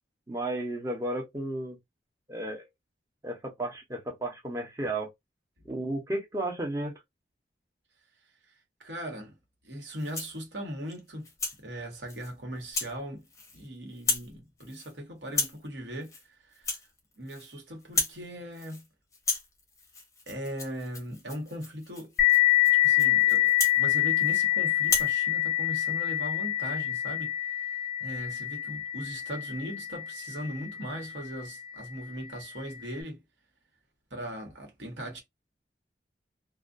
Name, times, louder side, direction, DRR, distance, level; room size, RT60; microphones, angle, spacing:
voice 1, 0.3-1.8 2.3-2.6 3.2-5.1 5.6-7.0, right 1 dB, 20° right, 0.8 m, -33 dB
voice 2, 8.5-9.4 9.6-11.3 11.6-13.2 13.5-16.7 17.2-18.8 20.3-22.1 22.7-33.2 34.1-35.2, equal, 75° right, 1.3 m, -39 dB
Rattle (instrument), 9.9-10.4 10.9-11.6 12.1-12.3 12.7-12.9 13.2-13.7 13.9-14.3 14.6-14.9 15.3-15.6 16.0-16.2 16.5-17.5 17.8-18.2 18.5-18.9 19.1-24.4 24.8-25.1, left 3 dB, 15° left, 0.7 m, -34 dB
sound 1, 22.2-31.4, left 14 dB, 55° left, 0.4 m, -26 dB
2.4 x 2.3 x 2.5 m
head